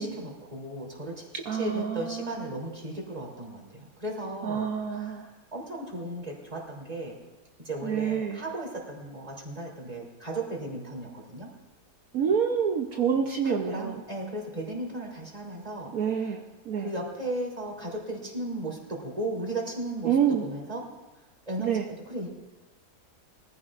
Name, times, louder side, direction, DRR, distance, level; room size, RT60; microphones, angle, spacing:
voice 1, 0.0-7.2 7.6-11.5 13.4-16.4 16.8-20.9 21.5-22.3, right 1 dB, 25° right, -1 dB, 3.2 m, -36 dB
voice 2, 1.5-2.5 4.4-5.2 7.8-8.4 12.1-13.9 15.9-16.4 16.7-16.9 20.1-20.4 21.6-21.8, right 7 dB, 65° right, 2 dB, 1.2 m, -27 dB
23.0 x 15.0 x 2.5 m, 1.1 s
omnidirectional pair, 1.7 m